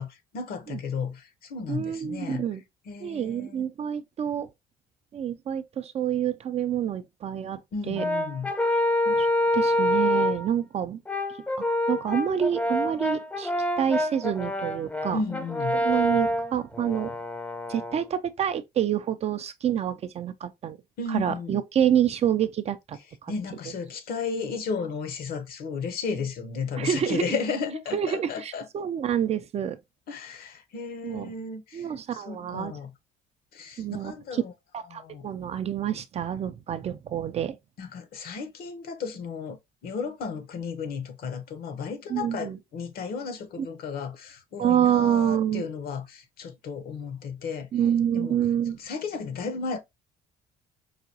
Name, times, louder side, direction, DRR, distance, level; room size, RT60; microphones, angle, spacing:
voice 1, 0.0-2.4 2.9-3.7 7.7-8.5 15.1-15.8 21.0-21.6 23.3-28.7 30.1-32.9 33.5-34.5 34.9-35.3 37.8-39.6 39.8-47.7 48.1-48.4 48.8-49.8, left 5 dB, 65° left, 0.9 m, -34 dB
voice 2, 1.7-2.6 3.0-4.5 5.1-7.6 7.9-8.0 9.1-9.3 9.5-11.0 11.6-13.5 13.8-15.2 15.8-17.2 17.7-20.8 21.1-23.3 26.8-27.2 27.9-29.8 31.0-31.3 31.7-32.7 33.8-34.1 34.7-37.6 42.1-42.6 43.6-43.7 44.6-45.7 47.7-48.8, right 9 dB, 40° right, 0.4 m, -27 dB
Brass instrument, 8.0-10.5 11.1-18.0, left 1 dB, 10° left, 0.6 m, -26 dB
4.8 x 2.3 x 2.7 m
cardioid pair, 110°, 17 cm